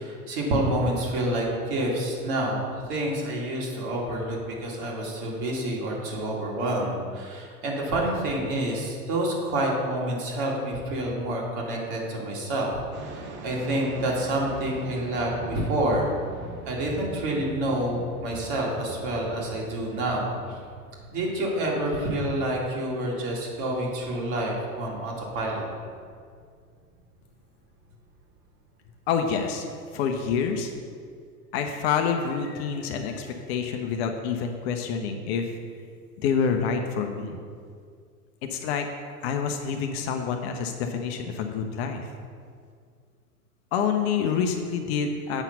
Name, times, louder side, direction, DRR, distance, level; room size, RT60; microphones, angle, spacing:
voice 1, 0.0-12.7 13.0-16.1 16.7-20.6 21.1-25.7, right 1 dB, 45° right, -2 dB, 2.3 m, -28 dB
sound 1, 12.9-29.7, right 3 dB, 25° right, 0.8 m, -44 dB
voice 2, 29.1-29.7 29.9-30.7 31.5-35.5 36.2-37.4 38.4-38.9 39.2-42.1 43.7-45.4, left 6 dB, 40° left, 4 dB, 0.8 m, -27 dB
8.2 x 5.7 x 5.5 m, 2.1 s
figure-of-eight pair, 90°, 46 cm